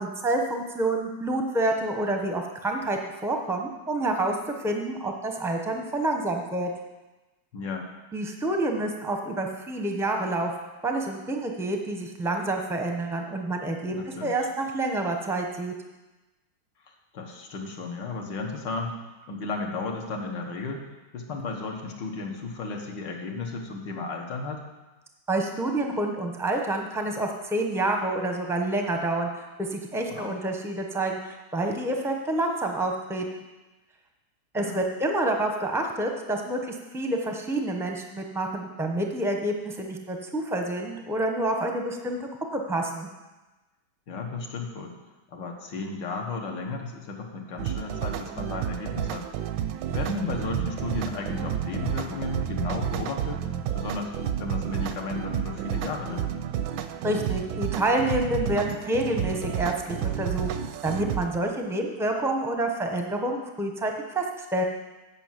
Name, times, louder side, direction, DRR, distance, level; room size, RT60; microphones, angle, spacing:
voice 1, 0.0-4.3 4.6-6.7 8.1-10.5 10.8-14.0 14.2-15.7 25.3-33.4 34.5-43.1 57.0-60.5 60.8-64.6, right 1 dB, 5° right, 2 dB, 0.3 m, -28 dB
voice 2, 7.5-7.9 13.9-14.4 17.1-19.0 19.3-20.9 21.1-24.6 30.1-30.4 34.6-34.8 44.1-45.0 45.3-49.3 49.9-53.5 53.7-54.1 54.4-56.3, left 3 dB, 85° left, 2 dB, 1.9 m, -34 dB
sound 1, 47.6-61.4, right 10 dB, 80° right, 1.2 m, -31 dB
9.0 x 5.6 x 7.4 m, 1.1 s
omnidirectional pair, 1.9 m